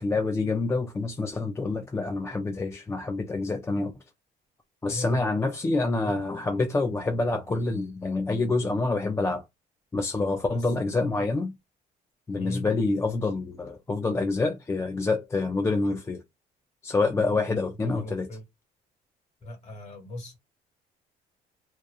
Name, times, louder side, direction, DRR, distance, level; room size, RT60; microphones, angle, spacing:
voice 1, 0.0-3.9 4.8-9.4 9.9-11.5 12.3-16.2 16.8-18.3, left 3 dB, 15° left, 0.4 m, -27 dB
voice 2, 4.9-5.6 5.9-6.2 10.5-10.6 11.1-11.3 12.3-12.7 17.4-18.4 19.4-20.4, left 1 dB, 40° left, 1.6 m, -39 dB
2.9 x 2.2 x 2.3 m
cardioid pair, 110°, 17 cm